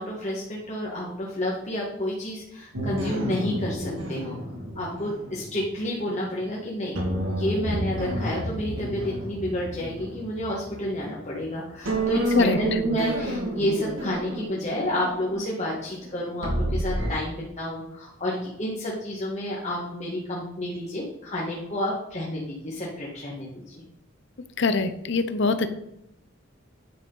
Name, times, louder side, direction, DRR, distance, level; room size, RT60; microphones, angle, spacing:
voice 1, 0.0-4.4 4.7-7.0 7.3-23.7, left 1 dB, 35° left, -4 dB, 1.6 m, -30 dB
sound 1, 2.7-6.5 6.9-11.5 11.9-17.1, right 1 dB, 85° right, 2.2 m, -30 dB
voice 2, 24.6-25.7, left 3 dB, 65° left, 11 dB, 0.7 m, -23 dB
9.4 x 6.2 x 3.9 m, 0.84 s
head